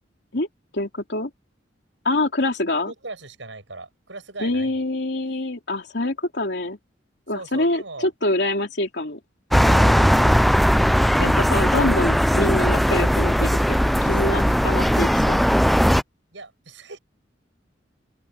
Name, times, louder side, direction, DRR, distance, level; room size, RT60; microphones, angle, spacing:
voice 1, 0.7-1.3 2.0-2.9 4.4-6.8 7.3-9.2 11.2-15.4, left 2 dB, 65° left, 3.0 m, -25 dB
voice 2, 2.9-4.8 7.3-8.1 9.6-10.4 16.3-17.0, right 3 dB, 90° right, 6.7 m, -38 dB
sound 1, 9.5-16.0, equal, ahead, 0.4 m, -18 dB
open air
head